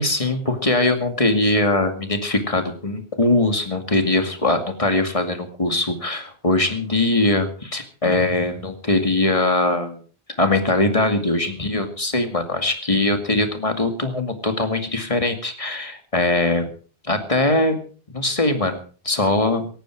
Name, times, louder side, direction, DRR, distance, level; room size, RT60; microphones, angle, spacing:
voice 1, 0.0-10.0 10.4-16.7 17.0-17.8 18.1-19.7, left 2 dB, 35° left, 7 dB, 2.3 m, -21 dB
18.5 x 14.0 x 4.7 m, 0.40 s
omnidirectional pair, 1.0 m